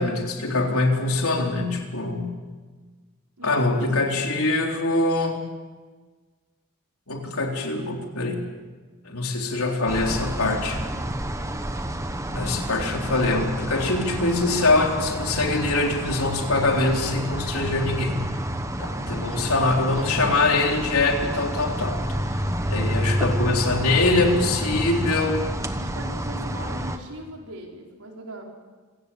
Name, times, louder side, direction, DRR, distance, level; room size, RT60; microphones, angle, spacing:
voice 1, 0.0-2.3 3.4-5.4 7.1-8.4 9.0-10.8 12.3-18.2 18.8-22.0 22.7-25.4, left 2 dB, 80° left, 1 dB, 3.8 m, -23 dB
voice 2, 3.4-4.1 22.2-22.5 25.8-28.4, right 1 dB, 90° right, 0 dB, 4.9 m, -39 dB
sound 1, 9.9-27.0, equal, 15° right, 1.2 m, -29 dB
26.5 x 17.0 x 7.3 m, 1.4 s
head